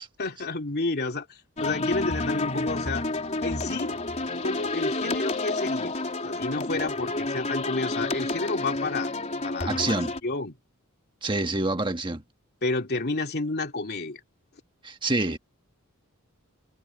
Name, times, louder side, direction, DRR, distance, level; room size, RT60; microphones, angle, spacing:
voice 1, 0.2-3.1 3.4-4.0 4.4-6.0 6.2-9.1 9.4-10.0 10.2-10.6 12.6-14.2, left 3 dB, 50° left, 2.7 m, -30 dB
sound 1, 1.6-10.2, left 2 dB, 30° left, 3.9 m, -30 dB
voice 2, 9.7-10.1 11.2-12.2 14.8-15.4, right 2 dB, 20° right, 1.6 m, -27 dB
head